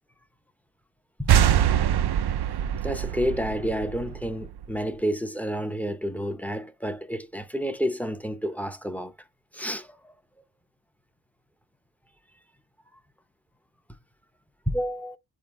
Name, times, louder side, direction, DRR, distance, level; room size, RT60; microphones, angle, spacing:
sound 1, 1.3-4.8, right 10 dB, 60° right, 0.5 m, -24 dB
voice 1, 2.8-9.1 9.5-10.1 14.7-15.2, equal, 5° left, 0.7 m, -30 dB
8.5 x 3.8 x 4.4 m
wide cardioid pair, 80°, 44 cm